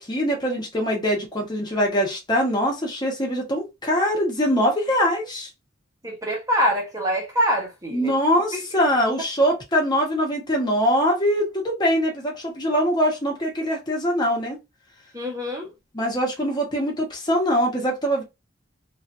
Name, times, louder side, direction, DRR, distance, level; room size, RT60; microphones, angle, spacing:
voice 1, 0.0-5.5 7.9-14.6 15.9-18.2, equal, 20° left, 1.2 m, -23 dB
voice 2, 6.0-8.1 8.5-8.7 15.1-15.7, equal, 15° right, 1.2 m, -24 dB
3.2 x 2.8 x 2.6 m
head